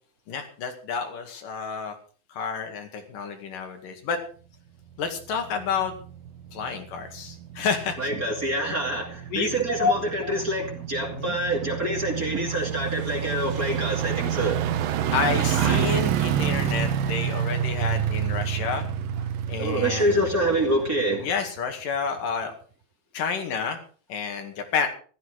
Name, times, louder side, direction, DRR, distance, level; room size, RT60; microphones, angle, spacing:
voice 1, 0.3-2.0 2.3-4.2 5.0-5.9 6.5-8.1 9.3-9.9 11.1-11.4 15.1-18.9 19.5-20.3 21.2-22.5 23.1-23.8 24.1-24.9, left 6 dB, 70° left, 5 dB, 3.7 m, -29 dB
sound 1, 5.0-21.6 22.0-22.1, right 9 dB, 85° right, 2.9 m, -29 dB
voice 2, 8.0-14.6 15.6-15.9 19.6-21.3, right 1 dB, 25° right, 0 dB, 2.7 m, -26 dB
15.5 x 13.0 x 4.8 m, 0.41 s
omnidirectional pair, 4.0 m